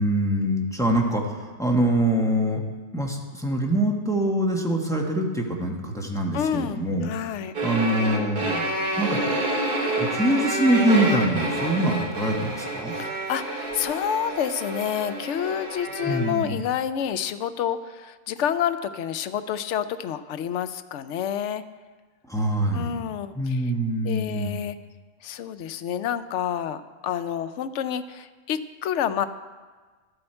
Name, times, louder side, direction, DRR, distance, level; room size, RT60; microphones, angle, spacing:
voice 1, 0.0-2.6 2.9-7.1 7.6-8.6 9.0-9.2 10.0-12.9 16.0-16.6 22.3-23.0 23.3-24.6, right 1 dB, 5° left, 0 dB, 1.0 m, -24 dB
voice 2, 6.3-7.5 12.9-21.6 22.7-23.7 24.0-24.8 25.2-29.3, left 9 dB, 70° left, 12 dB, 0.9 m, -29 dB
sound 1, 7.5-16.4, right 1 dB, 45° right, 1.5 m, -28 dB
12.0 x 7.8 x 4.4 m, 1.4 s
omnidirectional pair, 1.3 m